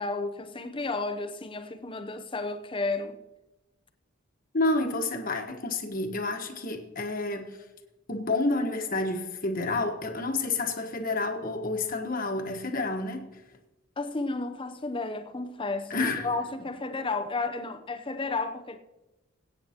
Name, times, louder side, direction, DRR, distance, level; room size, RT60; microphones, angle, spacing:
voice 1, 0.0-3.2 14.0-18.8, left 3 dB, 25° left, 0.7 m, -32 dB
voice 2, 4.5-7.6 8.1-13.4 15.9-16.3, left 2 dB, 40° left, 1.3 m, -29 dB
22.5 x 9.0 x 2.9 m
head